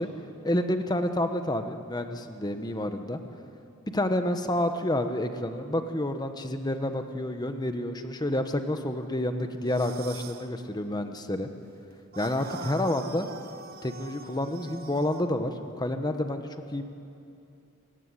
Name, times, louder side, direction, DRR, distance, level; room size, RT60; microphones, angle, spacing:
voice 1, 0.4-3.2 3.9-11.5 12.2-13.3 13.8-16.8, left 1 dB, 20° left, 7 dB, 1.2 m, -29 dB
sound 1, 9.6-10.5 12.1-15.3, right 5 dB, 45° right, 1.2 m, -43 dB
29.0 x 15.5 x 9.9 m, 2.7 s
head